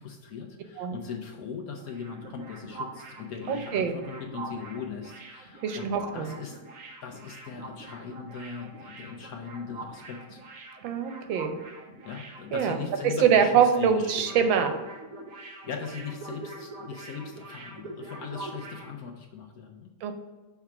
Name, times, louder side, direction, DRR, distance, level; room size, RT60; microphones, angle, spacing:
voice 1, 0.0-5.9 6.1-6.6 7.0-10.4 12.1-14.6 15.4-19.9, left 6 dB, 65° left, 2 dB, 1.0 m, -39 dB
sound 1, 1.7-13.2 13.5-13.6 13.9-18.9, right 2 dB, 55° right, 1.1 m, -44 dB
voice 2, 3.5-3.9 5.6-6.3 10.8-11.6 12.5-12.8 13.0-14.7 20.0-20.1, right 7 dB, 90° right, 7 dB, 1.5 m, -24 dB
5.8 x 3.5 x 5.7 m, 1.1 s
omnidirectional pair, 2.0 m